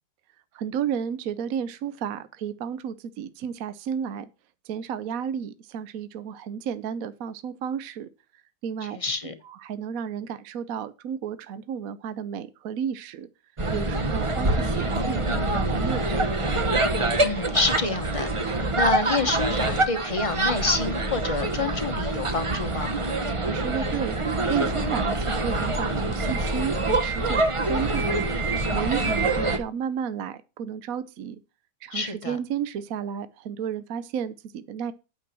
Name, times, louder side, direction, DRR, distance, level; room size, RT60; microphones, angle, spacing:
voice 1, 0.5-4.3 4.7-8.1 8.6-9.0 9.4-13.3 13.7-16.3 23.5-24.2 24.5-28.3 28.7-31.4 31.8-34.9, right 8 dB, 65° right, 1.0 m, -32 dB
voice 2, 8.9-9.3 17.2-18.3 18.7-23.0 31.9-32.4, left 3 dB, 25° left, 1.0 m, -27 dB
sound 1, 13.6-29.6, right 2 dB, 25° right, 0.7 m, -25 dB
9.0 x 5.3 x 7.3 m
omnidirectional pair, 1.8 m